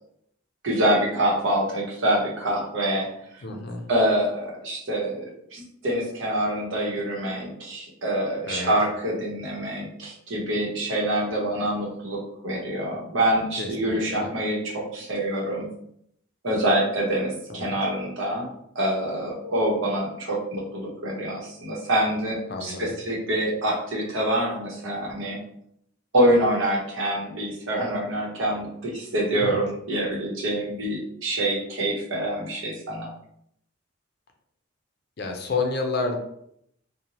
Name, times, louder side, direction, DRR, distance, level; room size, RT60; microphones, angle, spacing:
voice 1, 0.6-3.1 3.9-5.3 5.5-15.6 16.4-18.5 18.7-25.4 26.1-33.1, right 1 dB, 75° right, -3 dB, 0.9 m, -26 dB
voice 2, 3.4-3.8 8.5-8.7 13.6-14.3 17.5-17.7 22.5-22.8 29.3-29.6 35.2-36.2, left 3 dB, 50° left, 3 dB, 0.5 m, -30 dB
2.7 x 2.1 x 2.9 m, 0.72 s
head